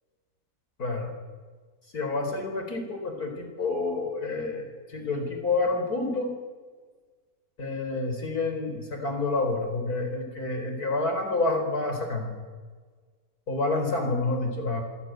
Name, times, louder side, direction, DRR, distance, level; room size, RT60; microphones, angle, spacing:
voice 1, 0.8-1.1 1.9-6.3 7.6-12.4 13.5-14.8, left 3 dB, 80° left, 5 dB, 4.9 m, -28 dB
26.0 x 16.5 x 9.3 m, 1.5 s
omnidirectional pair, 1.6 m